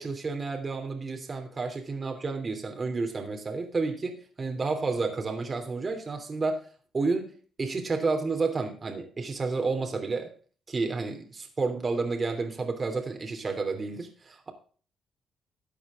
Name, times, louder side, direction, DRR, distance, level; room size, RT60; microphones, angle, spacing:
voice 1, 0.0-6.6 6.9-7.3 7.6-10.3 10.7-14.5, right 4 dB, 35° right, 4 dB, 3.0 m, -30 dB
13.0 x 8.5 x 3.7 m, 0.41 s
cardioid pair, 90°, 0 cm